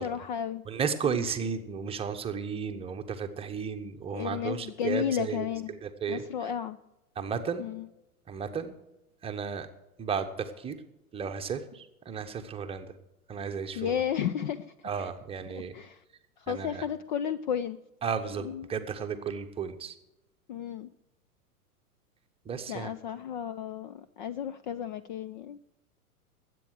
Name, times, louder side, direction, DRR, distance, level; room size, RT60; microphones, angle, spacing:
voice 1, 0.0-0.6 1.0-1.2 4.1-5.8 6.1-6.8 7.6-7.9 13.8-15.1 15.5-16.0 16.4-17.8 18.4-18.7 20.5-20.9 22.7-25.6, left 9 dB, 35° left, 13 dB, 0.4 m, -33 dB
voice 2, 0.7-6.5 7.2-7.7 8.3-8.7 9.2-9.7 10.0-10.8 11.1-12.9 13.3-14.0 14.8-15.8 16.5-16.8 18.0-19.9 22.4-22.9, right 6 dB, 15° right, 6 dB, 1.0 m, -34 dB
20.5 x 8.4 x 4.8 m, 0.94 s
figure-of-eight pair, 100°, 44 cm